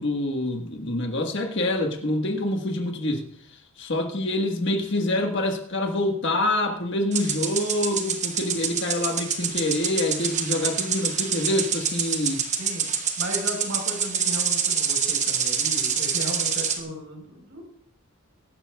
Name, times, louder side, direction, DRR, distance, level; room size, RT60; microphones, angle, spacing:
voice 1, 0.0-3.2 3.8-12.4 16.9-17.0, left 1 dB, 55° left, 3 dB, 1.5 m, -26 dB
sound 1, 7.1-16.8, right 7 dB, 35° right, 1.0 m, -26 dB
voice 2, 13.2-17.6, equal, 70° right, 1 dB, 4.1 m, -35 dB
22.0 x 11.5 x 2.3 m, 0.68 s
head